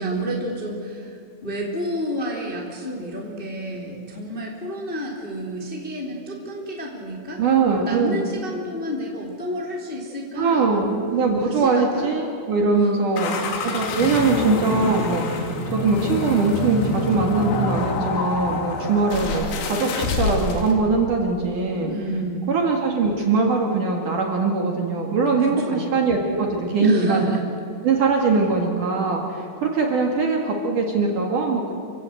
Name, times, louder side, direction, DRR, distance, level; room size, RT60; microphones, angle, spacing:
voice 1, 0.0-7.4 7.9-11.0 11.4-12.1 12.7-13.5 21.9-22.5 25.4-25.9 26.8-27.4, equal, 15° left, -1 dB, 1.9 m, -30 dB
voice 2, 7.4-8.3 10.4-21.9 22.5-27.3 27.8-31.8, right 4 dB, 55° right, 1 dB, 2.8 m, -22 dB
sound 1, 13.2-20.7, left 3 dB, 85° left, 4.6 m, -26 dB
27.0 x 16.5 x 7.8 m, 2.6 s
omnidirectional pair, 5.5 m